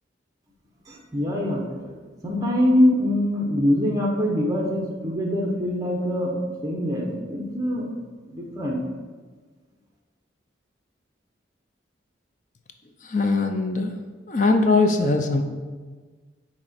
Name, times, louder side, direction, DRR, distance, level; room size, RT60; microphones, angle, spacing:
voice 1, 0.9-1.9 2.2-6.3 6.6-8.0 8.3-8.8, left 1 dB, 20° right, -1 dB, 1.0 m, -24 dB
voice 2, 13.0-13.9 14.3-15.4, left 3 dB, 40° left, 5 dB, 0.5 m, -21 dB
8.7 x 3.0 x 4.3 m, 1.4 s
head